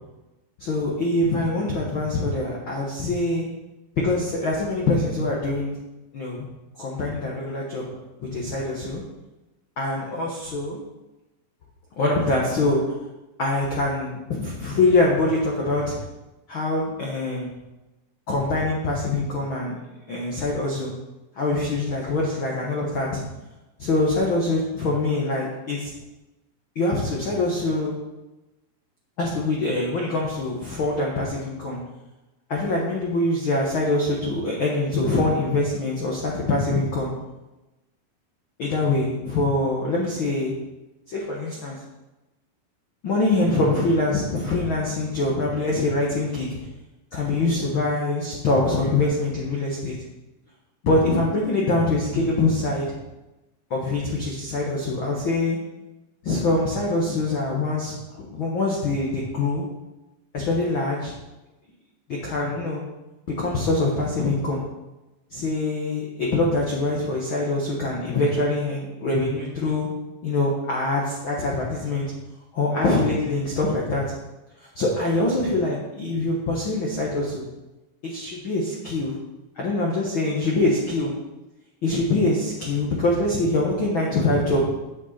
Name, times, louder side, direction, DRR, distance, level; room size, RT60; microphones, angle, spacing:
voice 1, 0.6-3.4 4.0-5.7 6.1-6.5 6.8-9.0 9.8-10.8 12.0-12.8 13.4-15.9 16.5-17.5 18.3-19.7 20.1-20.9 21.3-23.2 23.8-25.9 26.7-27.9 29.2-31.8 32.5-37.1 38.6-40.5 41.1-41.8 43.0-46.6 47.1-50.0 50.8-52.9 53.7-55.6 56.2-59.6 60.3-61.1 62.1-62.8 63.4-64.6 65.3-69.9 70.2-72.1 72.5-74.0 74.6-77.5 78.0-79.2 79.5-81.1 81.8-84.6, left 2 dB, 70° left, -3 dB, 1.2 m, -24 dB
8.3 x 8.1 x 4.2 m, 1.0 s
omnidirectional pair, 4.3 m